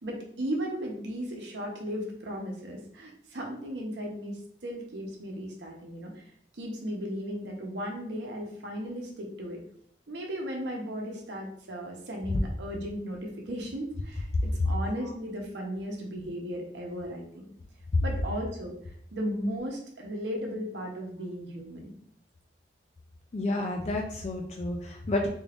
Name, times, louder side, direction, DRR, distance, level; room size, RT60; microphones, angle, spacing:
voice 1, 0.0-6.1 6.5-9.6 10.1-17.5 18.0-18.7 19.1-21.9, equal, 90° right, 0 dB, 0.8 m, -36 dB
voice 2, 23.3-25.3, left 2 dB, 40° left, 1 dB, 0.3 m, -31 dB
3.6 x 2.4 x 3.4 m, 0.64 s
head